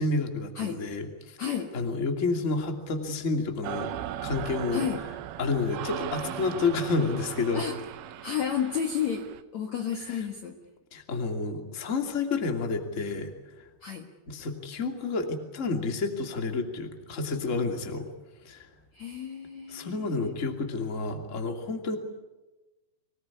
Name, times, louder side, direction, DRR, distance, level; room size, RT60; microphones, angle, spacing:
voice 1, 0.0-1.5 1.7-3.9 4.2-4.9 5.4-7.6 10.0-10.2 10.9-13.3 13.6-13.7 14.3-18.1 18.4-18.7 19.7-22.0, left 3 dB, 25° left, 4 dB, 2.2 m, -30 dB
voice 2, 1.4-1.7 4.7-5.0 7.5-7.8 8.2-10.6 13.8-14.1 18.9-20.4, left 8 dB, 55° left, 3 dB, 2.3 m, -32 dB
sound 1, 3.6-9.4, right 11 dB, 70° right, 2.7 m, -38 dB
25.0 x 19.5 x 9.8 m, 1.1 s
omnidirectional pair, 4.8 m